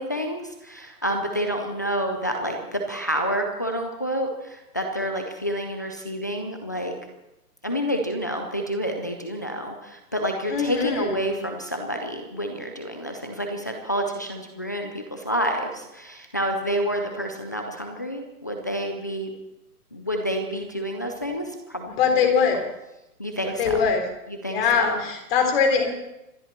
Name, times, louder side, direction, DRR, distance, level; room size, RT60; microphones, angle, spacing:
voice 1, 0.0-6.9 7.6-19.3 19.9-21.9 23.2-23.8 24.4-25.0, equal, 15° left, 2 dB, 0.4 m, -28 dB
voice 2, 10.5-11.3 22.0-22.6 23.6-24.0 24.5-25.9, left 6 dB, 40° left, 4 dB, 3.8 m, -22 dB
26.0 x 11.5 x 4.3 m, 0.91 s
hypercardioid pair, 155°, 47 cm